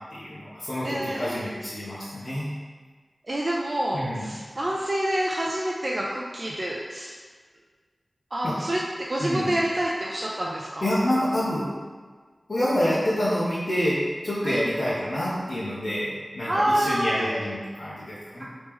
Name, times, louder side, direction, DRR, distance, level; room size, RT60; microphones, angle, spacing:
voice 1, 0.1-2.5 3.9-4.3 8.4-8.5 9.2-9.5 10.8-11.7 12.5-18.4, equal, 65° left, -11 dB, 0.9 m, -27 dB
voice 2, 0.8-1.5 3.2-7.2 8.3-8.8 9.1-10.9 14.4-14.6 16.5-17.3, right 1 dB, 50° right, -4 dB, 0.4 m, -27 dB
3.1 x 3.1 x 3.5 m, 1.5 s
cardioid pair, 40°, 0 cm